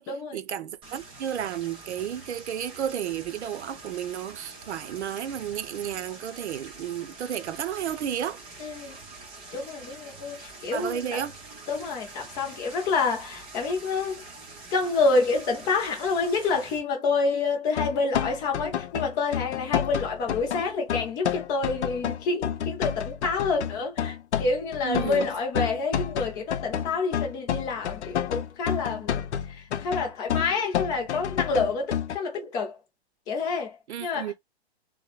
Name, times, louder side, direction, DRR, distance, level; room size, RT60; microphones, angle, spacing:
voice 1, 0.3-8.4 10.7-11.3 24.8-25.3 33.9-34.3, right 9 dB, 85° right, 0.6 m, -32 dB
sound 1, 0.8-16.8, right 3 dB, 15° right, 0.7 m, -45 dB
voice 2, 8.6-9.0 9.5-11.2 11.7-14.2 14.7-32.8 33.3-34.3, left 4 dB, 10° left, 0.3 m, -28 dB
sound 2, 17.8-32.2, left 9 dB, 85° left, 0.6 m, -29 dB
3.0 x 2.1 x 2.3 m
hypercardioid pair, 140°, 33 cm